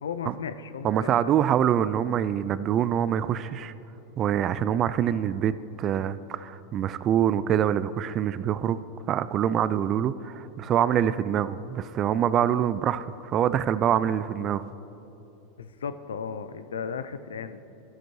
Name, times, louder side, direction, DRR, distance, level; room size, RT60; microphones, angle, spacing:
voice 1, 0.0-1.3 15.6-17.6, left 6 dB, 85° left, 12 dB, 0.4 m, -35 dB
voice 2, 0.8-3.7 4.2-5.5 5.8-8.8 9.1-14.6, right 9 dB, 40° right, 15 dB, 0.3 m, -25 dB
13.5 x 7.8 x 3.2 m, 3.0 s
hypercardioid pair, 95°, 0 cm